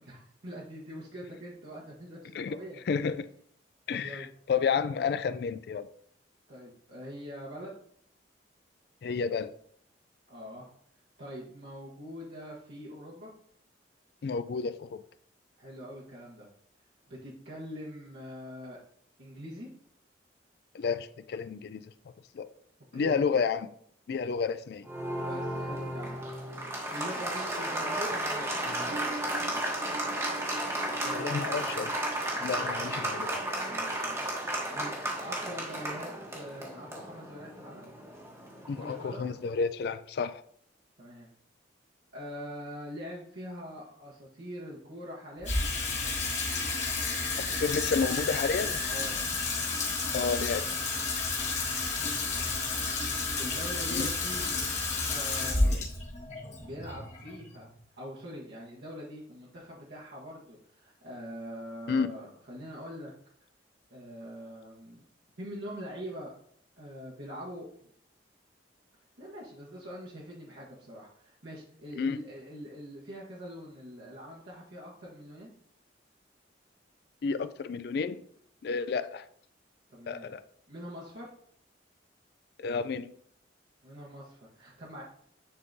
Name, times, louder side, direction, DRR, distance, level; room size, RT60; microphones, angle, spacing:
voice 1, 0.0-2.8 3.9-4.3 6.5-7.7 10.3-10.7 11.2-13.3 15.6-16.5 17.1-18.8 19.2-19.7 22.9-23.2 25.2-26.2 26.9-29.6 31.0-31.9 32.3-33.1 33.7-37.9 38.8-39.3 41.0-41.3 42.1-45.6 48.8-49.2 52.0-52.8 53.1-54.6 55.1-55.9 56.6-57.7 58.0-63.1 63.9-65.0 65.4-66.3 66.8-67.9 69.2-75.5 79.9-80.4 80.7-81.3 83.8-85.0, equal, 65° right, 1.3 m, -44 dB
voice 2, 2.9-3.3 3.9-5.9 9.0-9.5 14.2-15.0 20.7-21.8 22.3-22.5 22.9-23.7 24.1-24.9 31.1-31.9 32.4-33.4 38.7-40.4 47.4-48.8 50.1-50.7 53.9-54.1 55.7-55.9 61.9-62.1 72.0-72.2 77.2-78.2 78.6-79.2 80.1-80.4 82.6-83.1, left 5 dB, 60° left, 0.3 m, -31 dB
Applause, 24.8-39.2, right 1 dB, 15° right, 1.1 m, -34 dB
sound 1, 28.6-34.2 34.4-34.5, right 3 dB, 40° right, 0.5 m, -45 dB
Water tap faucet / Sink (filling or washing), 45.4-57.8, left 3 dB, 40° left, 1.5 m, -31 dB
9.4 x 3.6 x 2.7 m
head